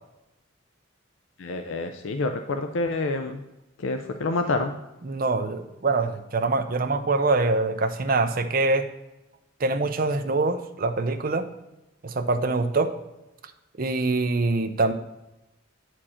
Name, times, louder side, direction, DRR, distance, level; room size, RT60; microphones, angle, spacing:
voice 1, 1.4-3.4 3.8-4.8, left 3 dB, 75° left, 6 dB, 0.5 m, -27 dB
voice 2, 5.0-8.9 9.6-11.5 12.0-12.9 13.8-14.9, right 3 dB, 45° right, 8 dB, 0.5 m, -24 dB
8.8 x 4.5 x 4.3 m, 0.97 s
head